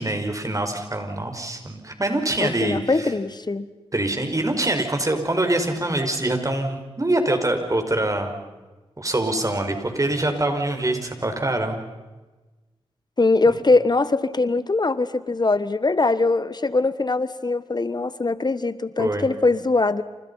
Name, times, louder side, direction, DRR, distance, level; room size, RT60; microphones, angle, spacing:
voice 1, 0.0-3.1 3.9-8.3 9.0-11.8 19.0-19.3, right 1 dB, 30° right, 5 dB, 5.6 m, -24 dB
voice 2, 2.4-3.7 13.2-20.0, left 3 dB, 40° left, 15 dB, 1.4 m, -22 dB
28.5 x 28.0 x 5.7 m, 1.2 s
cardioid pair, 50°, 11 cm